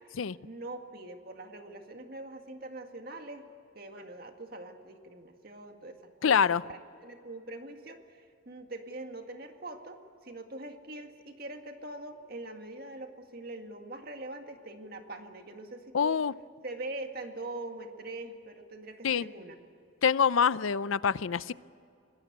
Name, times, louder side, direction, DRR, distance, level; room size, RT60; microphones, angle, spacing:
voice 1, 0.4-3.5 3.7-6.4 6.7-16.2 16.6-19.6, right 2 dB, 50° right, 2.0 m, -43 dB
voice 2, 6.2-6.6 15.9-16.3 19.0-19.2 20.0-21.5, left 6 dB, 85° left, 0.5 m, -25 dB
26.0 x 19.5 x 8.2 m
head